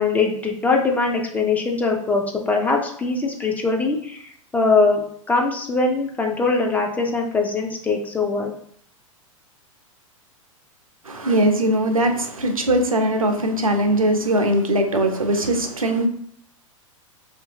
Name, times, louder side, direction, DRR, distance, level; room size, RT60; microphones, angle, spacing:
voice 1, 0.0-8.5, left 3 dB, 10° left, 1 dB, 0.3 m, -22 dB
voice 2, 11.0-16.1, right 1 dB, 85° right, 5 dB, 0.5 m, -20 dB
2.6 x 2.5 x 2.7 m, 0.63 s
figure-of-eight pair, 95°, 17 cm